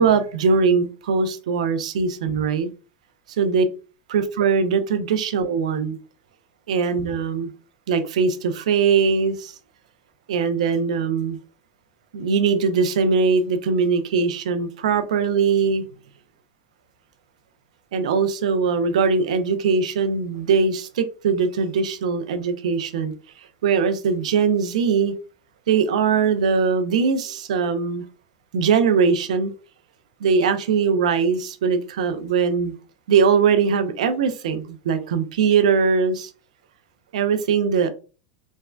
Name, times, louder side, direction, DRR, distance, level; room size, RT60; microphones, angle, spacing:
voice 1, 0.0-2.7 3.4-3.6 4.1-6.0 6.7-7.5 7.9-9.5 10.3-11.4 12.1-15.8 17.9-23.1 23.6-25.1 25.7-28.0 28.5-29.5 30.2-32.7 33.1-36.3 37.1-37.9, right 5 dB, 80° right, 0.4 m, -21 dB
3.4 x 2.1 x 2.2 m
hypercardioid pair, 100°, 4 cm